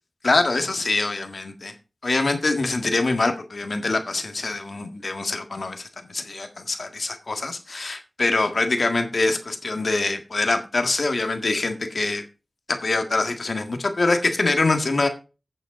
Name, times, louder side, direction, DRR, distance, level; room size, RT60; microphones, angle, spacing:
voice 1, 0.2-1.7 2.0-12.2 12.7-15.1, left 3 dB, 60° left, 6 dB, 1.7 m, -24 dB
9.0 x 6.9 x 5.0 m, 0.31 s
wide cardioid pair, 80°, 0 cm